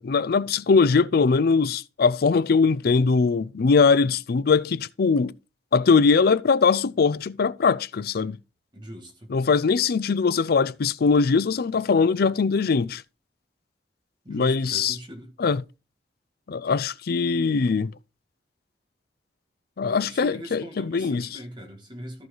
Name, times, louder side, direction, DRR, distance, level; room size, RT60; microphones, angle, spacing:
voice 1, 0.0-5.3 5.7-8.4 9.3-13.0 14.3-15.0 15.4-15.6 16.5-17.9 19.8-21.4, left 5 dB, 60° left, 0.4 m, -21 dB
voice 2, 8.7-9.3 14.2-15.4 19.8-22.3, equal, 25° right, 2.1 m, -41 dB
14.0 x 4.7 x 4.0 m
head